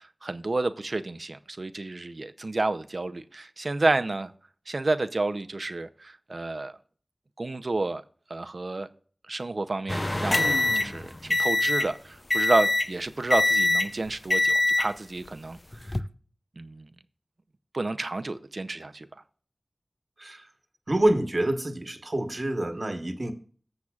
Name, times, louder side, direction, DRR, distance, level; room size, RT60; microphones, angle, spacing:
voice 1, 0.0-4.3 4.7-6.8 7.4-8.0 8.3-8.9 9.3-15.6 15.8-16.0 16.6-16.9 17.7-19.1, right 2 dB, 65° right, 0.6 m, -30 dB
sound 1, 9.9-11.9 12.3-12.9 13.3-13.9 14.3-14.9 15.7-16.0, left 2 dB, 40° left, 0.5 m, -24 dB
voice 2, 20.9-23.3, right 1 dB, 50° right, 1.3 m, -26 dB
14.5 x 7.2 x 2.4 m
wide cardioid pair, 45°, 0 cm